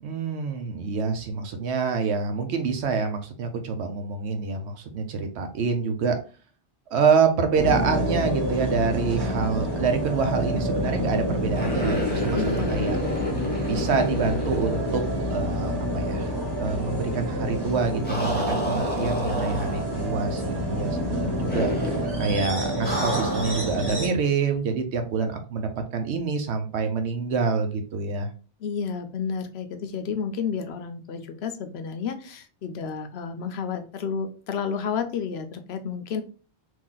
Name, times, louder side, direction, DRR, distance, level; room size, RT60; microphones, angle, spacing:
voice 1, 0.0-6.2 6.9-13.0 13.7-15.0 15.3-16.3 16.6-21.7 22.2-28.3, right 5 dB, 80° right, 6 dB, 1.0 m, -26 dB
sound 1, 7.6-24.1, equal, 25° right, 1.1 m, -28 dB
sound 2, 11.5-15.7 15.9-16.0 18.0-20.1 21.5-22.2 22.8-23.7, left 1 dB, 10° left, 0.9 m, -30 dB
voice 2, 12.3-13.0 28.6-36.2, left 6 dB, 75° left, 7 dB, 0.8 m, -31 dB
3.0 x 2.6 x 3.8 m, 0.36 s
omnidirectional pair, 1.1 m